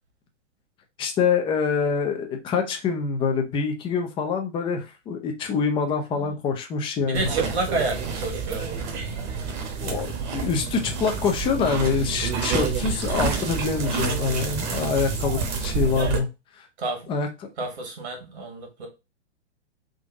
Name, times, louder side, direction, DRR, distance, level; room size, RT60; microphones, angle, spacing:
voice 1, 1.0-7.3 9.8-16.3 16.5-16.7 17.1-17.3, left 5 dB, 15° left, 5 dB, 0.5 m, -25 dB
voice 2, 7.0-8.8 16.8-17.1 17.6-18.9, right 3 dB, 65° right, 3 dB, 1.7 m, -30 dB
sound 1, 7.1-16.2, right 5 dB, 40° right, 1.1 m, -28 dB
3.8 x 2.6 x 3.6 m, 0.27 s
hypercardioid pair, 120°, 35 cm